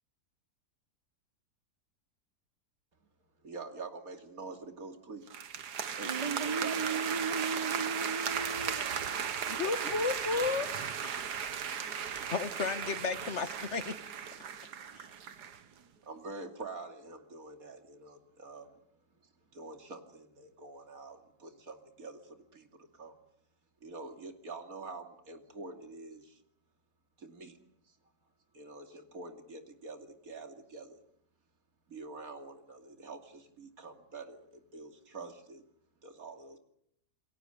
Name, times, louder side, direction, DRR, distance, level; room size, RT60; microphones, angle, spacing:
voice 1, 3.4-5.3 6.0-7.0 16.0-18.8 19.2-23.2 23.8-26.4 27.2-27.6 27.9-28.0 28.5-31.0 31.9-35.6 36.0-36.6, right 3 dB, 60° right, 4 dB, 3.0 m, -46 dB
sound 1, 5.3-15.6, right 7 dB, 80° right, 1.8 m, -36 dB
voice 2, 6.0-9.6, right 5 dB, 20° right, 9 dB, 1.6 m, -37 dB
Fill (with liquid), 8.4-13.1 13.4-13.5, left 2 dB, 75° left, 7.5 m, -53 dB
voice 3, 9.5-10.7 12.3-14.0 14.9-15.1, left 4 dB, 45° left, 11 dB, 1.6 m, -33 dB
29.0 x 22.0 x 6.6 m, 0.71 s
omnidirectional pair, 1.7 m